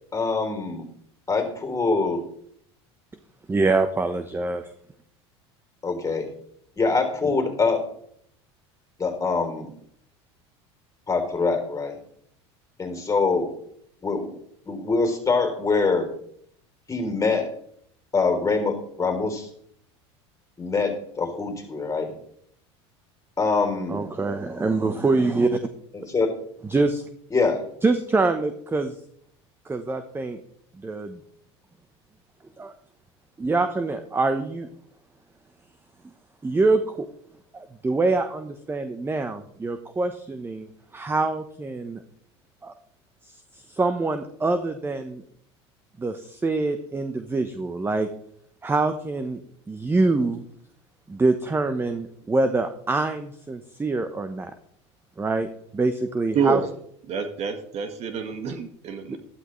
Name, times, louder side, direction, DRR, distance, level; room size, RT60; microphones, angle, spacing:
voice 1, 0.1-0.8 1.3-2.2 5.8-6.3 6.8-7.9 9.0-9.7 11.1-11.9 12.8-13.5 14.0-14.4 14.7-16.1 16.9-17.5 18.1-19.5 20.6-22.2 23.4-24.0 25.9-26.4 27.3-27.6, left 4 dB, 20° left, 4 dB, 3.3 m, -24 dB
voice 2, 3.5-4.6 23.9-25.6 26.6-27.0 27.8-28.9 29.6-30.4 30.8-31.2 32.6-32.7 33.4-34.7 36.4-37.1 37.5-42.0 42.6-42.7 43.5-45.2 46.0-48.1 48.6-49.4 49.7-50.4 51.1-54.5 55.2-55.5 55.7-56.6, right 3 dB, 15° right, 9 dB, 0.9 m, -25 dB
voice 3, 56.3-56.7 57.1-59.2, right 6 dB, 50° right, 7 dB, 1.7 m, -27 dB
12.5 x 11.5 x 3.2 m, 0.68 s
hypercardioid pair, 90°, 14 cm